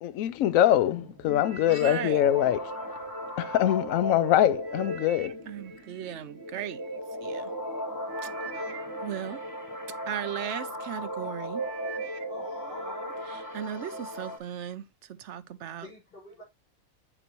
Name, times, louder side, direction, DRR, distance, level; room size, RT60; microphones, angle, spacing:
voice 1, 0.0-2.6 3.4-5.3, left 12 dB, 75° left, 1.0 m, -23 dB
sound 1, 0.8-14.4, equal, 15° left, 1.4 m, -36 dB
sound 2, 1.3-3.6 4.1-7.0 7.7-7.8 8.1-10.5 11.0-11.3 11.6-13.1 13.4-13.9 14.5-14.6, right 7 dB, 85° right, 1.3 m, -47 dB
voice 2, 1.8-2.2 5.5-6.8 7.2-7.5 8.2-8.3 9.0-9.4 10.1-11.6 13.3-15.9, right 10 dB, 65° right, 0.9 m, -37 dB
voice 3, 12.3-13.2 15.8-16.4, left 2 dB, 40° left, 5.4 m, -46 dB
7.9 x 6.1 x 3.0 m
omnidirectional pair, 1.4 m